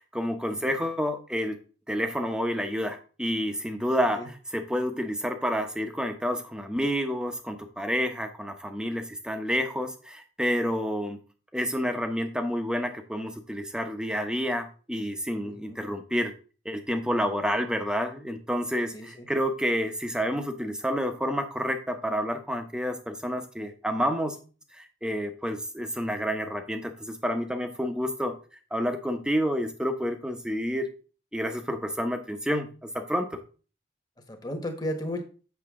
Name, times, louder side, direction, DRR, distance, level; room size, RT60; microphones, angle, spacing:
voice 1, 0.0-1.6 1.9-11.2 11.5-16.3 16.6-24.4 24.7-28.4 28.7-30.9 31.3-33.4, equal, 5° right, 6 dB, 0.9 m, -29 dB
voice 2, 15.4-15.8 18.9-19.3 34.3-35.2, left 1 dB, 20° left, 5 dB, 1.3 m, -34 dB
8.0 x 6.4 x 3.7 m, 0.36 s
head